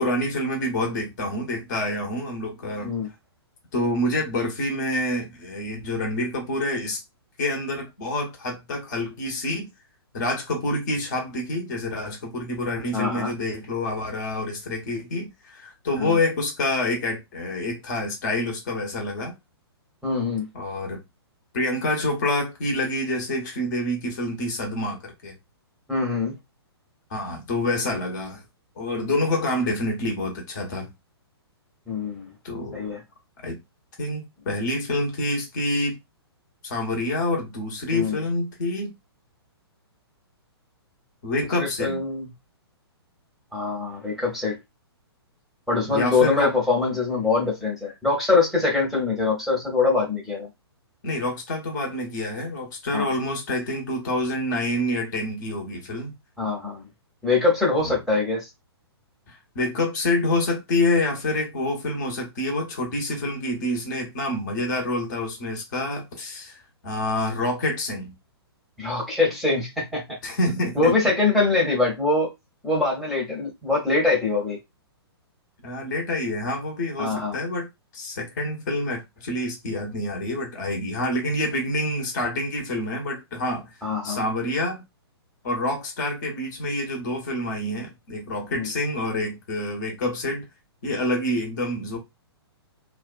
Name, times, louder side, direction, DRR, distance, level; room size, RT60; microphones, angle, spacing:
voice 1, 0.0-2.9 3.7-7.0 7.4-9.7 10.1-19.3 20.5-21.0 21.5-25.4 27.1-28.4 28.8-30.9 32.4-32.8 33.4-33.6 34.0-36.0 36.6-38.9 41.2-42.0 45.8-46.5 51.0-56.1 57.8-58.0 59.3-68.1 70.2-70.9 75.6-77.7 77.9-83.7 84.0-84.8 85.4-90.5 90.8-92.0, left 1 dB, 45° left, 0.9 m, -27 dB
voice 2, 12.9-13.3 16.0-16.2 20.0-20.5 25.9-26.3 31.9-32.3 32.7-33.0 37.9-38.1 41.6-42.3 43.5-44.6 45.7-50.5 52.9-53.1 56.4-56.9 57.2-58.5 68.8-70.2 70.8-72.3 72.6-74.6 77.0-77.4 83.8-84.2 88.5-88.7, left 3 dB, ahead, 0.8 m, -23 dB
2.5 x 2.2 x 2.3 m
figure-of-eight pair, 120°, 14 cm